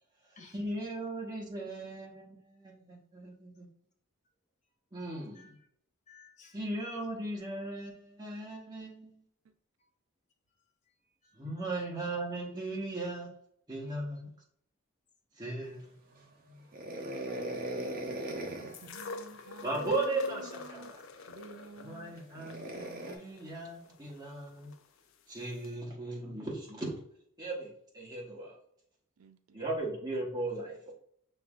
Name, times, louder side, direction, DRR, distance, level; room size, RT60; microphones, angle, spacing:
voice 1, 0.5-3.7 4.9-5.6 6.5-9.2 11.4-13.3 13.7-14.3 15.4-15.9 16.1-16.5 19.6-21.0 21.8-24.7 25.3-27.0 27.4-28.6 29.5-30.9, right 2 dB, 20° right, 1.1 m, -37 dB
voice 2, 5.0-5.5 6.1-6.6 13.9-14.0 17.5-18.7 25.7-25.8, left 4 dB, 30° left, 0.7 m, -60 dB
sound 1, 16.7-18.8 20.6-20.8 22.4-23.2, right 1 dB, 40° right, 0.6 m, -38 dB
sound 2, 18.7-24.8 25.6-25.7, left 4 dB, 60° left, 0.4 m, -45 dB
voice 3, 18.8-20.9 21.3-22.5 29.2-29.6, right 4 dB, 80° right, 0.4 m, -51 dB
5.4 x 3.3 x 2.4 m
head